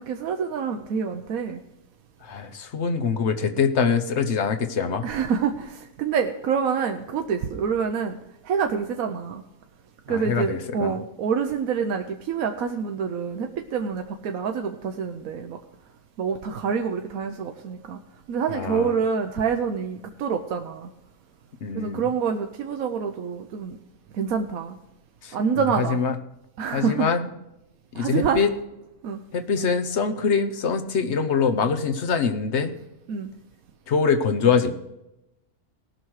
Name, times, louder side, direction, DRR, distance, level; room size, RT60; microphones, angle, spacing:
voice 1, 0.0-1.6 5.0-8.2 8.4-9.4 10.1-15.6 16.2-18.0 18.3-20.9 21.7-23.8 24.1-24.8 25.3-26.0 26.6-27.1 27.9-28.4 29.0-29.2 33.1-33.3, right 6 dB, 75° right, 5 dB, 1.2 m, -27 dB
voice 2, 2.2-5.1 10.1-11.0 18.5-18.9 21.6-22.0 25.2-26.1 26.7-27.3 28.0-28.5 29.3-32.7 33.9-34.7, left 5 dB, 55° left, 7 dB, 1.1 m, -24 dB
18.5 x 6.2 x 4.7 m, 0.92 s
omnidirectional pair, 1.5 m